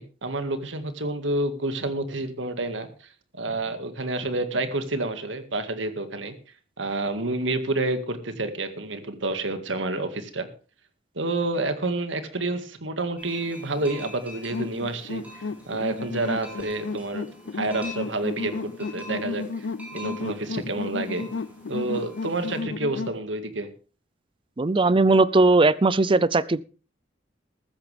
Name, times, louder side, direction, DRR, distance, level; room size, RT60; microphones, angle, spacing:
voice 1, 0.0-2.9 3.3-6.3 6.8-10.5 11.2-17.3 17.5-19.7 19.9-21.3 21.7-23.7, right 2 dB, 80° right, 9 dB, 2.0 m, -29 dB
sound 1, 13.2-22.6, equal, 10° right, 4.7 m, -45 dB
sound 2, 14.5-23.2, left 4 dB, 75° left, 0.6 m, -33 dB
voice 2, 24.6-26.6, right 3 dB, 25° right, 19 dB, 0.5 m, -19 dB
14.5 x 13.5 x 3.5 m, 0.36 s
head